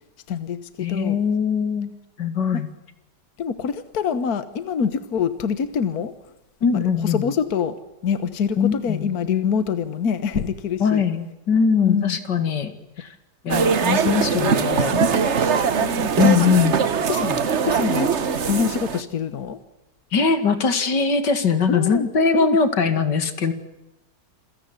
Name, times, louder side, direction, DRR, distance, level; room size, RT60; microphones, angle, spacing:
voice 1, 0.3-1.2 2.5-2.6 3.4-6.1 7.0-7.8 8.0-11.1 11.8-12.2 13.7-13.8 14.3-16.1 17.0-18.1 18.5-19.6 21.7-22.6, left 7 dB, 60° left, 13 dB, 1.7 m, -26 dB
voice 2, 0.8-2.7 6.6-7.3 8.6-9.1 10.8-12.7 13.0-13.1 13.4-14.9 16.2-16.8 20.1-23.5, left 5 dB, 90° left, 10 dB, 2.8 m, -21 dB
sound 1, 13.5-19.0, right 6 dB, 45° right, 1.3 m, -21 dB
27.5 x 17.0 x 9.5 m, 0.93 s
omnidirectional pair, 1.8 m